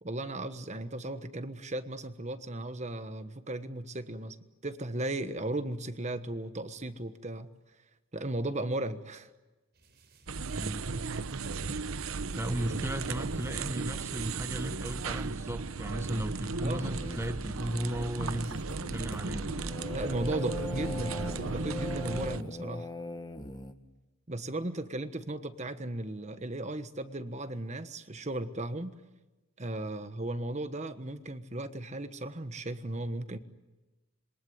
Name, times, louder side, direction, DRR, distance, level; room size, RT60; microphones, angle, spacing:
voice 1, 0.0-4.4 4.6-7.5 8.1-9.3 16.6-16.9 19.9-22.9 24.3-28.9 29.6-33.4, right 1 dB, 35° right, 10 dB, 1.3 m, -36 dB
sound 1, 9.8-15.3, right 1 dB, 55° right, 5.0 m, -52 dB
sound 2, 10.3-22.4, right 4 dB, 85° right, 0.9 m, -36 dB
voice 2, 10.5-10.9 12.4-19.5, right 1 dB, 15° right, 7 dB, 1.1 m, -35 dB
sound 3, 16.7-23.7, left 1 dB, 20° left, 1.5 m, -40 dB
27.0 x 23.0 x 9.6 m, 1.1 s
head